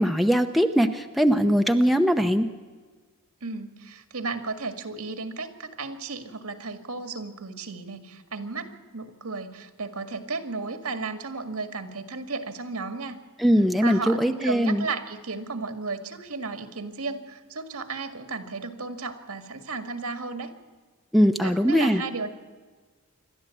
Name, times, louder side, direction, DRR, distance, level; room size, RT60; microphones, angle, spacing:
voice 1, 0.0-2.5 13.4-14.9 21.1-22.0, equal, ahead, 5 dB, 0.8 m, -21 dB
voice 2, 3.4-13.2 13.8-20.5 21.4-22.3, right 3 dB, 75° right, 7 dB, 1.9 m, -34 dB
27.5 x 12.0 x 8.4 m, 1.4 s
head